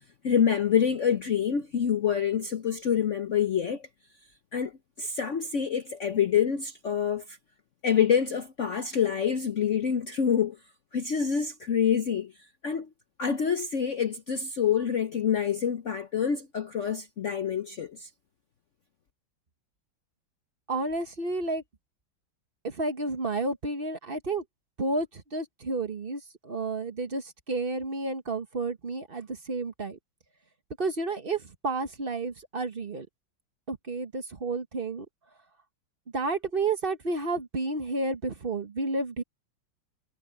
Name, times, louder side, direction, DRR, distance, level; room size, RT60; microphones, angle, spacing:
voice 1, 0.2-3.9 4.5-4.7 5.0-7.4 7.8-10.6 10.9-12.3 12.6-12.9 13.2-18.1, left 8 dB, 55° left, 0.9 m, -26 dB
voice 2, 20.7-21.6 22.6-24.4 24.8-30.0 30.8-33.1 33.7-35.0 36.1-39.2, right 3 dB, 35° right, 1.2 m, -31 dB
omnidirectional pair, 2.1 m